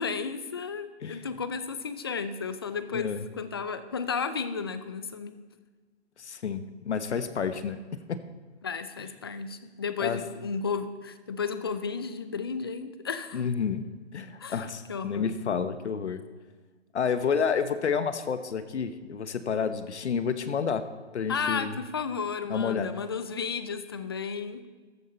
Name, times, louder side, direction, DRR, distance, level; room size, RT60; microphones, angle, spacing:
voice 1, 0.0-5.4 8.6-13.4 14.4-14.6 14.9-15.4 21.3-24.7, left 5 dB, 20° left, 12 dB, 0.4 m, -33 dB
voice 2, 2.9-3.2 6.2-7.8 8.1-8.2 10.0-10.2 13.3-16.2 16.9-20.8 21.1-21.8 22.5-22.9, left 6 dB, 70° left, 11 dB, 1.1 m, -30 dB
14.0 x 11.0 x 4.4 m, 1.4 s
hypercardioid pair, 145°, 35 cm